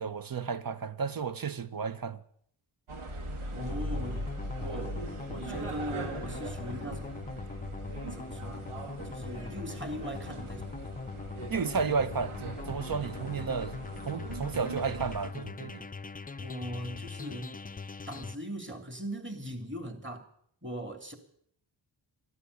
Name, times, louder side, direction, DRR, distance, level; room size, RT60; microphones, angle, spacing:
voice 1, 0.0-2.2 11.5-13.7 14.1-15.8, right 5 dB, 45° right, 1.1 m, -32 dB
sound 1, 2.9-15.3, right 1 dB, 80° right, 2.1 m, -40 dB
voice 2, 3.5-4.3 4.6-5.0 5.3-7.2 8.1-8.7 9.0-10.9 16.4-17.6 18.1-20.3 20.6-21.2, equal, 25° right, 3.0 m, -40 dB
sound 2, 3.6-18.3, left 4 dB, 20° left, 0.5 m, -41 dB
12.5 x 11.0 x 8.4 m
cardioid pair, 45°, 49 cm